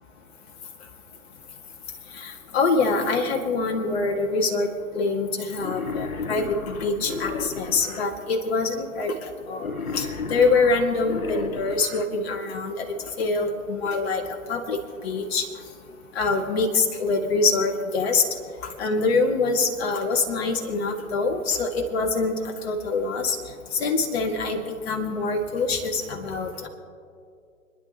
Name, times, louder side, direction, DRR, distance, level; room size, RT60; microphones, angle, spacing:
voice 1, 2.1-4.7 4.9-9.2 9.5-12.9 13.2-14.2 14.5-14.8 15.0-15.5 16.2-18.2 18.8-23.4 23.7-26.7, left 3 dB, 45° left, 1 dB, 2.2 m, -25 dB
Wild animals, 5.6-8.1 9.6-12.1, left 4 dB, 70° left, 1.3 m, -33 dB
30.0 x 11.0 x 3.0 m, 2.4 s
figure-of-eight pair, 125°, 44 cm